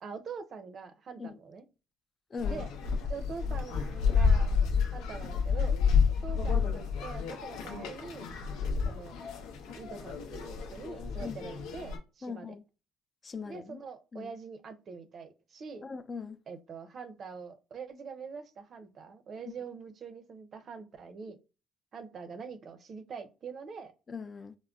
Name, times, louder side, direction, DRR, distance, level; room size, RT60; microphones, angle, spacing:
voice 1, 0.0-1.6 2.5-2.7 3.1-4.6 4.9-5.7 6.2-8.3 8.8-9.2 9.7-12.6 13.4-15.9 16.5-21.4 21.9-23.9, right 5 dB, 50° right, 0.5 m, -44 dB
voice 2, 2.3-2.7 11.2-11.4 12.2-12.6 13.2-13.8 14.1-14.3 15.8-16.4 24.1-24.6, left 5 dB, 35° left, 0.3 m, -40 dB
sound 1, 2.4-12.0, left 5 dB, 90° left, 0.7 m, -30 dB
3.7 x 2.0 x 2.3 m
cardioid pair, 90°, 0 cm